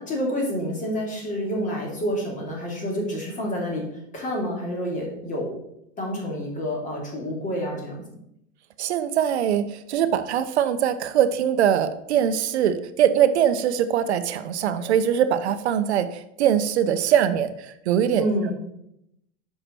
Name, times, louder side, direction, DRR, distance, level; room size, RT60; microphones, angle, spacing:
voice 1, 0.0-3.9 4.1-5.6 6.0-8.0 18.2-18.5, equal, 20° left, -1 dB, 2.6 m, -28 dB
voice 2, 8.8-18.5, right 9 dB, 75° right, 11 dB, 0.7 m, -22 dB
6.9 x 5.7 x 4.3 m, 0.78 s
hypercardioid pair, 130°, 34 cm